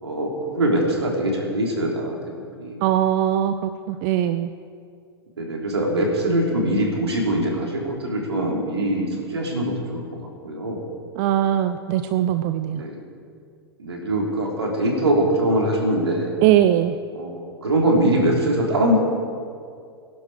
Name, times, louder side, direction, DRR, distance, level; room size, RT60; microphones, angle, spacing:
voice 1, 0.0-2.7 5.4-10.0 10.4-10.9 12.7-13.0 13.8-16.4 17.1-19.0, right 1 dB, 80° right, -1 dB, 3.5 m, -23 dB
voice 2, 2.8-4.5 11.2-12.8 16.4-16.9, right 12 dB, 45° right, 10 dB, 0.6 m, -20 dB
21.5 x 11.5 x 4.9 m, 2.3 s
figure-of-eight pair, 95°, 14 cm